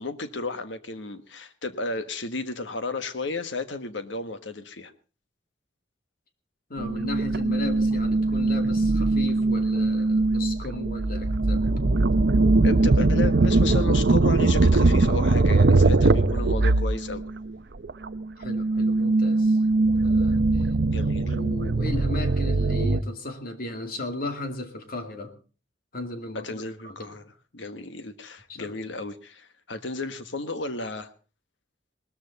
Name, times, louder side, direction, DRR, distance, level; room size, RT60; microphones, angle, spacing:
voice 1, 0.0-4.9 12.6-17.2 20.9-21.3 26.4-31.1, left 3 dB, 85° left, 10 dB, 1.4 m, -33 dB
voice 2, 6.7-11.6 18.4-19.6 20.0-20.7 21.2-25.3 25.9-27.1 28.5-28.8, left 2 dB, 55° left, 6 dB, 2.4 m, -36 dB
sound 1, 6.8-17.5 17.8-23.0, right 2 dB, 60° right, 0.7 m, -21 dB
19.0 x 13.5 x 4.1 m, 0.36 s
head